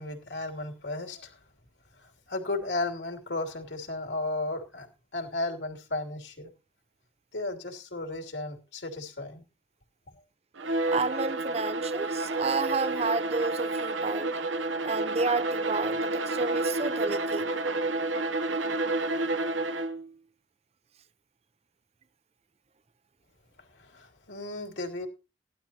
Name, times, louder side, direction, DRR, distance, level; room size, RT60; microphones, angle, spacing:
voice 1, 0.0-1.4 1.9-6.5 7.3-9.4 10.1-10.2 23.6-25.1, left 2 dB, 75° left, 2.9 m, -35 dB
Bowed string instrument, 10.6-20.1, right 2 dB, 85° right, 0.9 m, -30 dB
voice 2, 10.9-14.3 14.8-17.5, right 4 dB, 35° right, 0.5 m, -31 dB
18.0 x 12.0 x 2.9 m
head